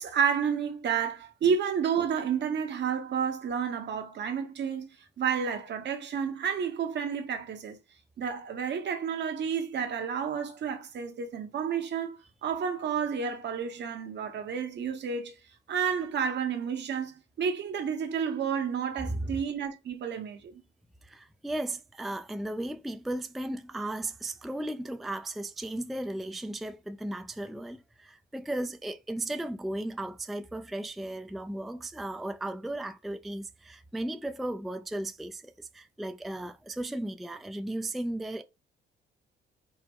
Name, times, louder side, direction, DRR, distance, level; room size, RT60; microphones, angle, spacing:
voice 1, 0.0-4.9 5.2-7.8 8.2-15.3 15.7-20.5, right 7 dB, 60° right, 0.9 m, -30 dB
voice 2, 21.0-38.4, right 1 dB, ahead, 0.3 m, -35 dB
4.6 x 2.1 x 3.5 m
cardioid pair, 90°, 20 cm